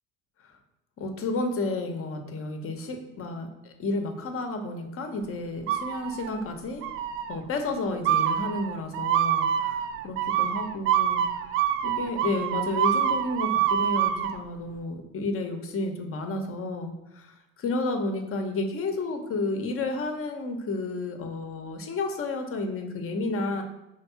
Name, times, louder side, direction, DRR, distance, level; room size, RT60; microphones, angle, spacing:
voice 1, 1.0-6.8 7.3-11.2 11.8-23.6, left 2 dB, 30° left, 5 dB, 1.1 m, -31 dB
sound 1, 5.7-6.4 6.8-7.4 8.0-14.4, right 9 dB, 35° right, 0.4 m, -26 dB
5.2 x 3.5 x 5.6 m, 0.95 s
hypercardioid pair, 70°, 42 cm